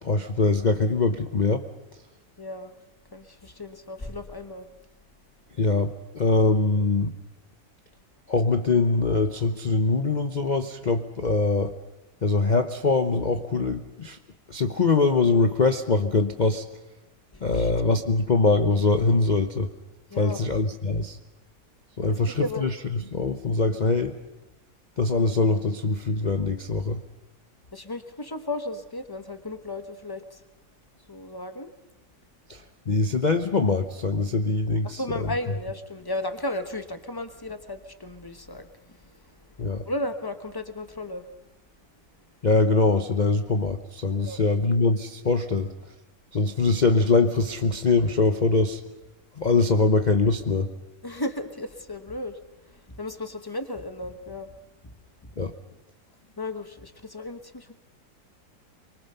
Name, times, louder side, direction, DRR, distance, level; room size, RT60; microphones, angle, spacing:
voice 1, 0.0-1.6 5.6-7.2 8.3-11.7 12.2-14.2 14.5-16.6 17.4-19.7 20.2-21.2 22.0-24.1 25.0-27.0 32.5-35.3 39.6-39.8 42.4-45.7 46.3-48.8 49.4-50.7 55.4-55.5, left 3 dB, 60° left, 7 dB, 0.4 m, -23 dB
voice 2, 2.4-2.7 3.1-4.7 17.5-17.7 20.1-20.5 22.4-22.7 27.7-30.4 31.1-31.7 34.8-39.0 39.8-41.2 44.2-44.4 51.0-52.4 52.7-54.5 54.8-54.9 56.4-57.7, left 1 dB, 20° left, 8 dB, 0.7 m, -34 dB
25.0 x 23.0 x 5.6 m, 1.0 s
omnidirectional pair, 2.0 m